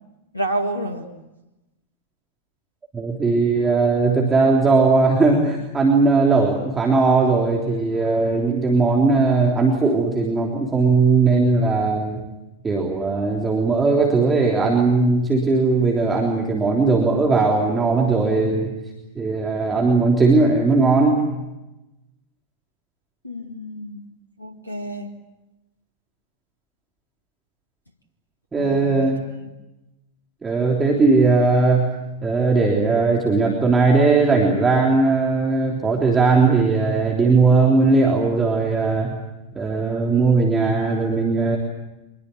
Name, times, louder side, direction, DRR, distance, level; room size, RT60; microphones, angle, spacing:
voice 1, 0.3-1.1 23.2-24.0 24.4-25.1 28.6-29.1 29.4-29.5, right 1 dB, 85° left, 6 dB, 1.8 m, -29 dB
voice 2, 2.9-12.2 12.6-18.7 19.1-21.2 28.5-29.2 30.4-31.9 32.2-39.2 39.5-41.6, right 3 dB, 15° right, -1 dB, 3.5 m, -18 dB
25.0 x 22.0 x 8.0 m, 0.99 s
figure-of-eight pair, 90°, 0 cm